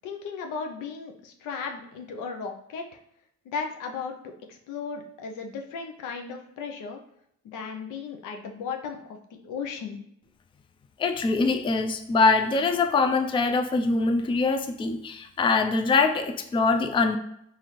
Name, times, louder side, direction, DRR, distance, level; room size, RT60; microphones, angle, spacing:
voice 1, 0.0-2.8 3.5-7.0 7.4-9.2 9.4-10.0, left 5 dB, 85° left, 3 dB, 0.6 m, -35 dB
voice 2, 11.0-17.2, left 4 dB, 20° left, 6 dB, 0.3 m, -23 dB
4.1 x 2.5 x 3.0 m, 0.74 s
cardioid pair, 90°, 30 cm